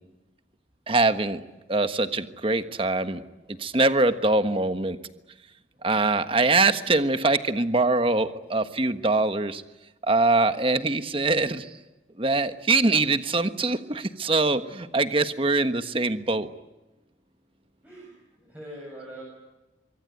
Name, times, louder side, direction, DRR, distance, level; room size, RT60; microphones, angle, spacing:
voice 1, 0.9-1.4 1.7-3.2 3.6-5.0 5.8-9.6 10.1-11.8 12.2-16.5, right 3 dB, 30° right, 9 dB, 1.4 m, -23 dB
voice 2, 18.4-19.2, right 1 dB, 10° right, -3 dB, 7.5 m, -42 dB
25.0 x 24.0 x 9.3 m, 1.1 s
head